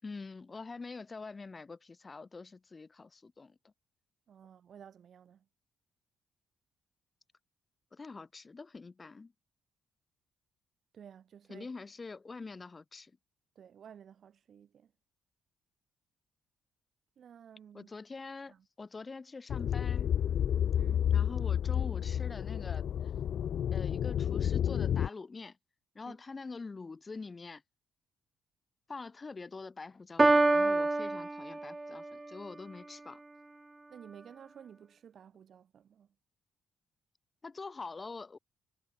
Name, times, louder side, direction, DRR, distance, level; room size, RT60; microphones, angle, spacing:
voice 1, 0.0-3.6 7.9-9.3 11.5-13.1 17.7-20.1 21.1-22.9 23.7-25.6 25.9-27.6 28.9-33.2 37.4-38.4, left 4 dB, 30° left, 6.4 m, -45 dB
voice 2, 4.3-5.4 10.9-11.7 13.6-14.9 17.2-17.9 18.5-18.6 20.7-21.1 26.0-26.2 33.9-36.1, right 8 dB, 60° right, 2.5 m, -53 dB
sound 1, 19.5-25.1, left 9 dB, 65° left, 0.4 m, -30 dB
Piano, 30.2-32.2, right 2 dB, 15° right, 0.4 m, -26 dB
cardioid pair, 90°, 0 cm